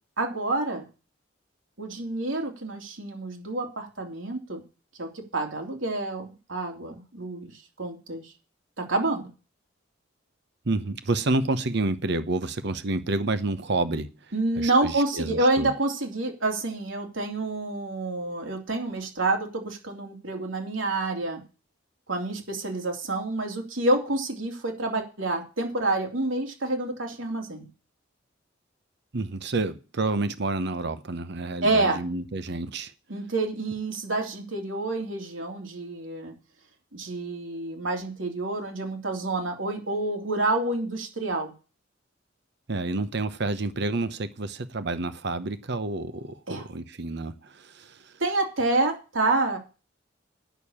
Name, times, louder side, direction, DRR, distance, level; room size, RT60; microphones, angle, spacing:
voice 1, 0.2-0.9 1.8-4.6 5.0-7.5 7.8-8.2 8.8-9.3 14.3-21.4 22.1-27.6 31.6-32.0 33.1-36.3 36.9-41.5 46.5-46.6 48.2-49.6, right 2 dB, 90° right, 3.2 m, -28 dB
voice 2, 10.6-14.1 14.6-15.7 29.1-32.9 42.7-48.1, right 2 dB, 60° right, 0.9 m, -29 dB
9.1 x 6.6 x 8.6 m
head